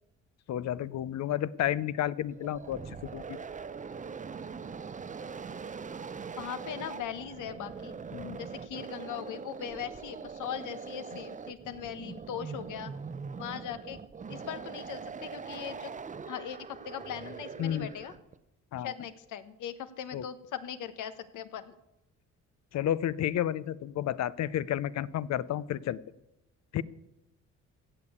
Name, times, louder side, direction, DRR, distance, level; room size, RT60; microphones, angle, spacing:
voice 1, 0.5-3.4 8.1-8.4 17.6-17.9 18.7-18.9 20.1-20.2 22.7-26.0 26.7-26.8, left 11 dB, 65° left, 18 dB, 0.6 m, -31 dB
sound 1, 2.2-18.3, right 5 dB, 25° right, 0.6 m, -42 dB
voice 2, 6.4-7.9 8.4-12.9 13.4-14.0 14.3-15.9 16.3-16.6 16.8-18.1 18.8-21.7, left 9 dB, 80° left, 11 dB, 1.1 m, -39 dB
16.0 x 6.8 x 8.4 m, 0.93 s
cardioid pair, 90°, 30 cm